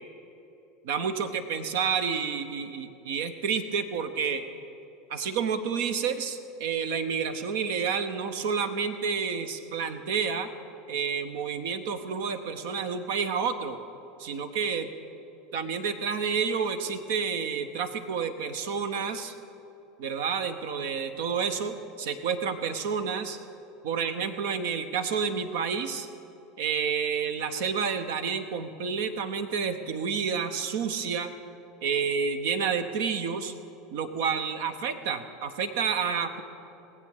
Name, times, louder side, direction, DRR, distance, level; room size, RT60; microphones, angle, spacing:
voice 1, 0.8-4.4 5.1-10.5 10.9-13.8 14.2-14.9 15.5-19.3 20.0-23.4 23.8-26.1 26.6-31.3 31.8-33.5 33.9-36.4, right 6 dB, 60° right, 9 dB, 0.9 m, -29 dB
19.5 x 8.1 x 5.4 m, 2.9 s
figure-of-eight pair, 75°, 0 cm